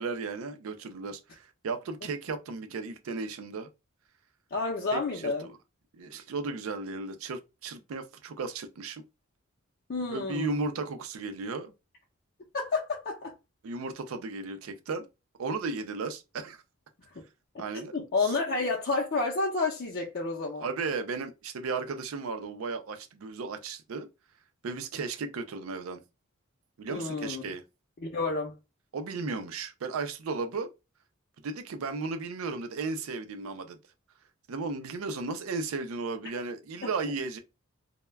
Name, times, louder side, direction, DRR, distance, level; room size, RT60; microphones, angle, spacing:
voice 1, 0.0-3.7 4.9-5.6 5.9-9.0 10.1-11.7 13.6-15.1 15.4-16.6 17.6-17.9 18.2-18.3 20.6-24.1 24.6-26.0 26.8-27.6 28.9-30.7 31.4-33.8 34.5-37.4, right 4 dB, 85° right, 0.4 m, -35 dB
voice 2, 4.5-5.5 9.9-10.6 12.5-13.3 17.5-17.6 17.9-20.7 26.9-27.4 28.0-28.5 36.8-36.9, left 3 dB, 50° left, 0.5 m, -30 dB
2.2 x 2.1 x 3.2 m
head